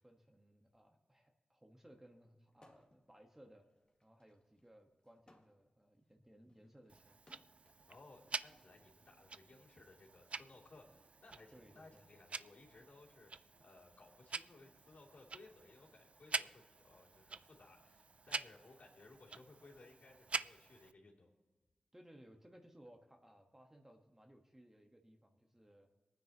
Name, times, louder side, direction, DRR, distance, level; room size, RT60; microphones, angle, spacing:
voice 1, 0.0-3.6 4.0-7.2 11.5-12.1 21.9-25.9, equal, 15° right, 3 dB, 1.3 m, -62 dB
sound 1, 2.5-3.1 3.5-7.8 8.7-10.4, left 1 dB, 35° left, 1.8 m, -70 dB
Tick-tock, 6.9-20.9, right 4 dB, 50° right, 0.3 m, -47 dB
voice 2, 7.9-21.3, left 2 dB, 70° left, -4 dB, 2.9 m, -61 dB
25.5 x 9.4 x 3.0 m, 1.3 s
wide cardioid pair, 90°, 3 cm